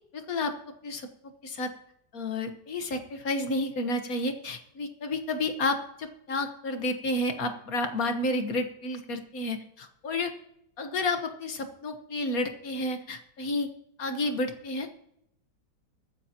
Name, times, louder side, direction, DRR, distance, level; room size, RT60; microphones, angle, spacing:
voice 1, 0.1-0.5 0.8-1.1 1.4-1.7 2.1-10.3 10.8-13.7 14.0-14.9, left 2 dB, 55° left, 6 dB, 1.7 m, -31 dB
22.5 x 9.8 x 2.9 m, 0.76 s
omnidirectional pair, 1.8 m